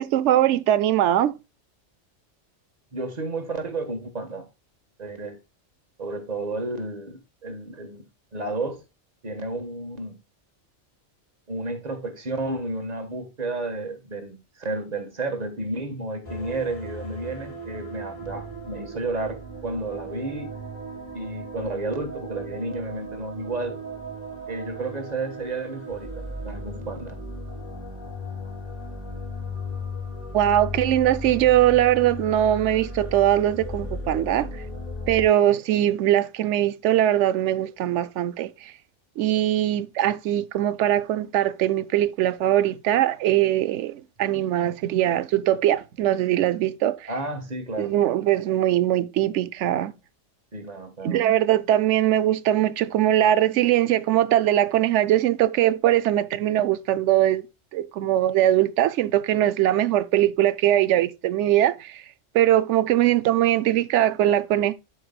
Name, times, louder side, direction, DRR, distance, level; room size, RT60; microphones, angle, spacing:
voice 1, 0.0-1.3 30.3-34.6 35.1-38.7 39.2-47.1 47.8-49.9 51.0-57.5 57.7-62.0 62.3-64.7, right 12 dB, 85° right, 0.9 m, -21 dB
voice 2, 2.9-4.5 5.0-5.4 6.0-8.1 8.3-8.8 9.2-10.2 11.5-20.5 21.1-23.8 24.5-27.2 47.1-47.9 50.5-51.2, right 2 dB, 35° right, 1.4 m, -32 dB
sound 1, 16.2-35.3, left 1 dB, 35° left, 3.8 m, -36 dB
12.0 x 4.7 x 2.2 m
omnidirectional pair, 1.2 m